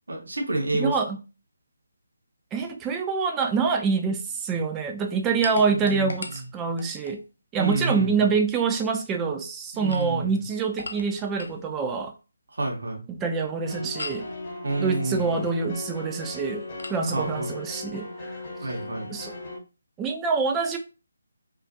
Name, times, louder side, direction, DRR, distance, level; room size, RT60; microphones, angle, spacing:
voice 1, 0.1-0.9 5.6-6.4 7.6-8.3 9.7-10.4 12.5-13.0 14.6-15.4 17.1-17.5 18.6-19.1, right 2 dB, 65° right, 0 dB, 0.8 m, -29 dB
voice 2, 0.7-1.2 2.5-7.2 7.5-12.1 13.1-14.2 14.8-16.6 16.9-18.3 18.6-18.7 19.1-19.3 20.0-20.8, right 5 dB, 15° right, 4 dB, 0.3 m, -26 dB
sound 1, 5.4-7.2 9.7-11.6 14.0-14.3 16.8-17.0, left 3 dB, 65° left, 0.4 m, -39 dB
sound 2, 13.6-19.6, left 2 dB, 30° left, 0.8 m, -38 dB
2.4 x 2.4 x 2.5 m, 0.33 s
figure-of-eight pair, 150°, 0 cm